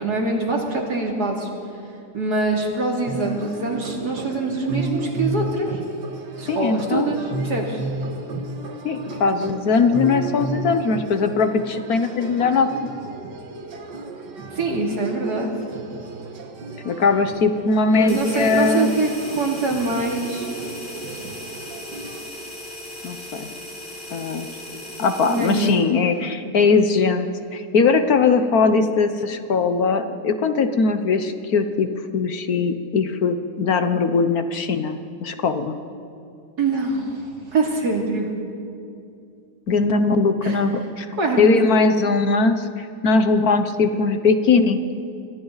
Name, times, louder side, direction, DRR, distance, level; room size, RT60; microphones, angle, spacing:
voice 1, 0.0-1.5 2.1-5.7 6.4-7.8 14.5-15.5 17.9-20.5 25.3-25.9 36.6-38.3 40.4-40.6 41.2-41.9, right 2 dB, 65° right, -1 dB, 3.3 m, -24 dB
sound 1, 2.9-22.2, right 2 dB, 80° right, 2.2 m, -33 dB
voice 2, 6.5-7.1 8.8-12.7 16.8-19.0 23.0-23.5 24.1-24.5 25.0-27.3 27.5-31.9 32.1-35.8 39.7-41.1 41.4-44.8, left 4 dB, 60° left, 8 dB, 1.5 m, -20 dB
sound 2, 18.1-25.8, left 1 dB, 35° left, 4.4 m, -37 dB
28.5 x 23.5 x 4.0 m, 2.5 s
omnidirectional pair, 1.8 m